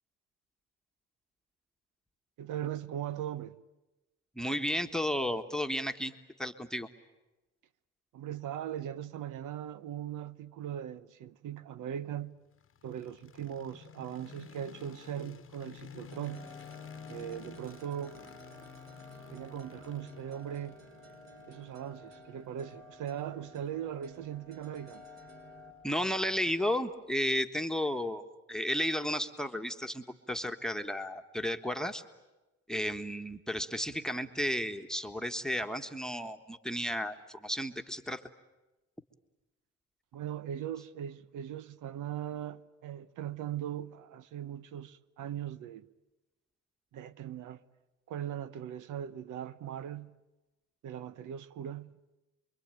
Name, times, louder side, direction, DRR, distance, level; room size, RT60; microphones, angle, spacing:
voice 1, 2.4-3.6 8.1-12.4 12.8-16.5 17.1-18.2 19.3-20.8 21.5-25.0 40.1-45.9 46.9-47.6 48.1-50.2 50.8-52.0, right 10 dB, 80° right, 1.0 m, -39 dB
voice 2, 4.3-6.9 25.8-32.0 32.7-38.2, equal, ahead, 1.4 m, -33 dB
sound 1, 12.5-26.6, left 8 dB, 45° left, 1.1 m, -52 dB
sound 2, 16.1-25.7, equal, 60° right, 7.1 m, -53 dB
28.0 x 23.0 x 9.1 m
cardioid pair, 90°, 30 cm